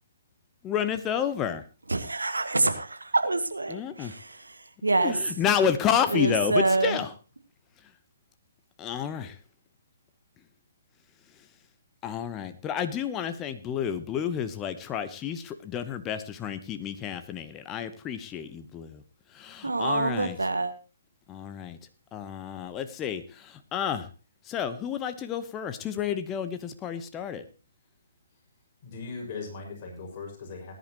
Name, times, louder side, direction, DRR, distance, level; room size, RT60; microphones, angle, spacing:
voice 1, 0.6-1.6 3.7-4.1 5.0-7.1 8.8-9.3 12.0-19.0 19.3-20.4 21.3-21.8 22.1-24.1 24.5-27.4, left 8 dB, 20° left, 10 dB, 1.0 m, -30 dB
voice 2, 1.9-4.6 4.8-5.2 6.1-7.0 19.6-20.7, right 2 dB, 80° right, 8 dB, 1.9 m, -26 dB
voice 3, 28.8-30.7, left 4 dB, 35° left, 0 dB, 5.8 m, -39 dB
19.5 x 10.5 x 3.0 m, 0.33 s
figure-of-eight pair, 135°, 0 cm